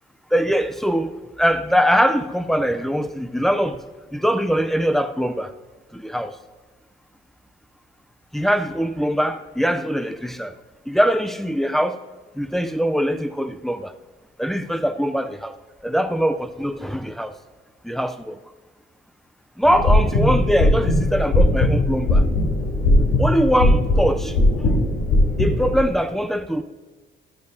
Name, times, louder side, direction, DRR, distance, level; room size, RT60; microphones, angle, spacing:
voice 1, 0.3-3.8 4.1-5.5 5.9-6.4 8.3-10.5 10.9-12.0 12.4-13.9 14.4-15.5 15.8-17.3 17.8-18.4 19.6-22.2 23.2-24.4 25.4-26.6, equal, ahead, 0.5 m, -22 dB
sound 1, 19.6-25.8, left 1 dB, 80° left, 3.5 m, -19 dB
13.0 x 10.0 x 2.7 m
cardioid pair, 90°, 20 cm